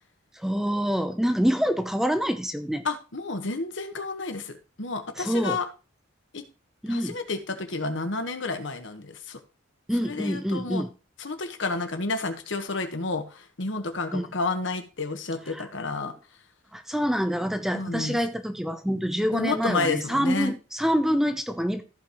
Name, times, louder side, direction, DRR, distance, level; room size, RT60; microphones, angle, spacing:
voice 1, 0.4-2.8 5.2-5.6 6.8-7.2 9.9-10.9 14.1-14.3 15.5-15.7 16.7-21.8, equal, ahead, 8 dB, 0.7 m, -26 dB
voice 2, 2.8-5.7 6.3-6.4 6.9-9.4 10.0-10.8 11.2-16.1 17.7-18.2 19.3-20.5, left 3 dB, 70° left, 7 dB, 1.4 m, -30 dB
14.5 x 5.4 x 3.1 m, 0.32 s
head